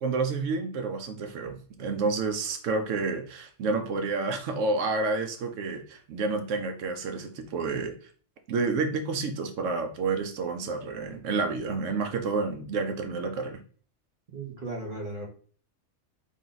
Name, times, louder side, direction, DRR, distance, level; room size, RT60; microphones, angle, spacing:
voice 1, 0.0-7.9 8.5-13.6, right 4 dB, 80° right, 6 dB, 1.0 m, -29 dB
voice 2, 14.3-15.3, right 2 dB, 45° right, 0 dB, 1.0 m, -36 dB
3.6 x 2.7 x 3.8 m, 0.43 s
omnidirectional pair, 1.3 m